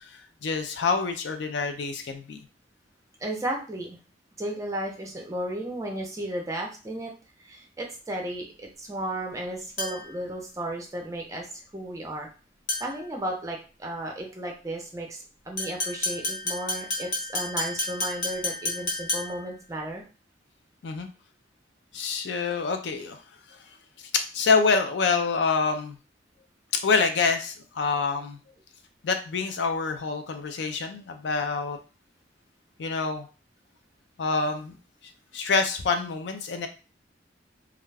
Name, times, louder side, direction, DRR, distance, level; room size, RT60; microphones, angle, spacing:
voice 1, 0.1-2.4 20.8-21.1 21.9-23.2 23.5-23.6 24.3-26.0 26.8-28.4 29.0-31.8 32.8-33.3 34.2-34.8 35.3-36.7, left 4 dB, 70° left, 6 dB, 0.4 m, -26 dB
voice 2, 3.2-4.0 4.4-7.1 7.4-12.3 12.8-20.0, right 1 dB, 15° right, 1 dB, 0.5 m, -34 dB
sound 1, 9.8-10.2 12.7-13.1 15.6-19.5, left 2 dB, 45° left, 0.7 m, -31 dB
2.4 x 2.2 x 3.2 m, 0.34 s
head